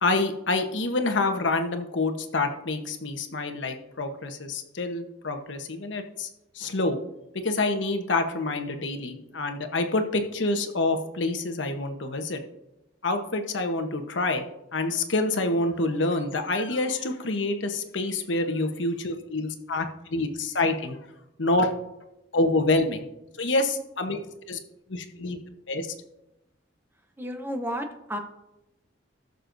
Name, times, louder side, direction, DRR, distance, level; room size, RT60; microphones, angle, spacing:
voice 1, 0.0-6.3 6.5-7.0 7.3-12.4 13.0-14.5 14.7-21.0 21.4-21.7 22.3-23.1 23.4-24.2 24.5-24.6 24.9-25.4 25.7-25.9, left 2 dB, 90° left, 6 dB, 1.0 m, -27 dB
voice 2, 27.2-28.2, equal, 10° right, 5 dB, 0.9 m, -32 dB
18.0 x 6.6 x 2.6 m, 0.89 s
head